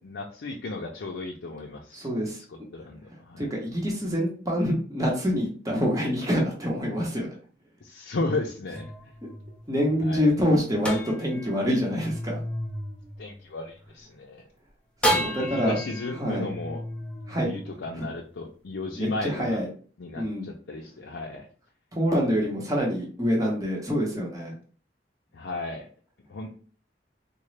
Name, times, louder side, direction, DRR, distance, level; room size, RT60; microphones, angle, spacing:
voice 1, 0.0-2.1 2.7-3.4 7.8-8.9 10.0-10.3 13.2-14.4 15.4-16.8 17.4-19.6 20.0-21.5 25.3-25.9 26.3-26.5, left 2 dB, 80° left, -1 dB, 0.5 m, -34 dB
voice 2, 1.9-2.4 3.4-7.4 9.7-12.4 15.0-15.8 16.2-16.5 17.3-17.5 17.9-18.1 18.9-19.7 20.2-20.5 21.9-24.5, equal, 20° right, -2 dB, 0.8 m, -26 dB
sound 1, 8.7-14.0 15.0-18.4, equal, 5° left, 0.5 m, -33 dB
3.7 x 2.1 x 3.2 m, 0.42 s
head